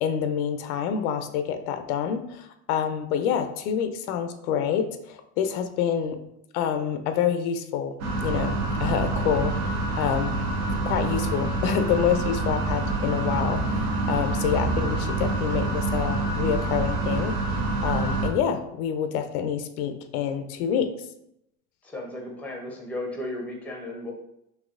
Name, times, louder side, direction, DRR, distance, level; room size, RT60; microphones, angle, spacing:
voice 1, 0.0-6.2 6.5-7.9 8.2-10.4 10.7-17.4 17.8-20.9, left 8 dB, 85° left, 8 dB, 0.5 m, -27 dB
sound 1, 8.0-18.3, right 2 dB, 65° right, 0.9 m, -26 dB
voice 2, 21.8-24.1, left 1 dB, 5° left, 0 dB, 0.6 m, -35 dB
4.1 x 2.7 x 2.4 m, 0.79 s
supercardioid pair, 125°, 43 cm